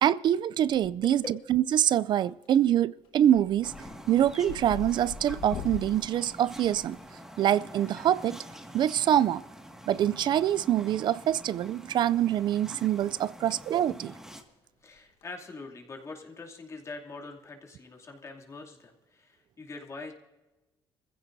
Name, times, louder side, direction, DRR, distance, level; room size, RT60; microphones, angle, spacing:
voice 1, 0.0-1.2 1.5-3.7 4.1-7.0 7.4-8.4 8.7-9.4 9.9-14.1, right 11 dB, 55° right, 0.3 m, -25 dB
sound 1, 0.7-1.2 1.6-2.1 2.4-2.7 3.0-7.5 8.8-9.0 10.2-11.0 11.3-11.5 12.0-12.1 12.4-12.5 12.8-13.0 13.3-13.4 15.0-15.2, left 8 dB, 80° left, 1.3 m, -43 dB
sound 2, 3.6-14.4, equal, 5° right, 1.8 m, -47 dB
voice 2, 13.4-13.7 14.8-20.1, left 3 dB, 35° left, 2.6 m, -44 dB
24.5 x 15.5 x 2.7 m
cardioid pair, 105°, 9 cm